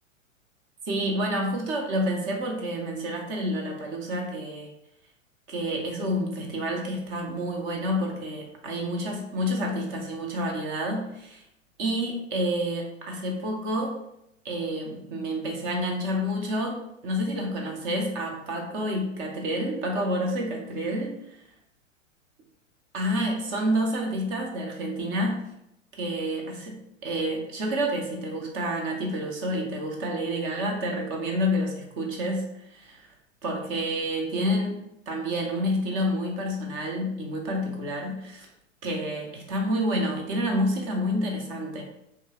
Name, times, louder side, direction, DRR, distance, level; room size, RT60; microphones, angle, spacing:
voice 1, 0.8-4.7 5.5-11.4 11.8-14.0 14.4-16.8 17.0-21.4 22.9-25.4 26.0-33.1 33.4-34.8 35.1-38.5 38.8-41.8, equal, 20° right, 1 dB, 0.3 m, -29 dB
2.8 x 2.4 x 2.8 m, 0.81 s
hypercardioid pair, 105°, 39 cm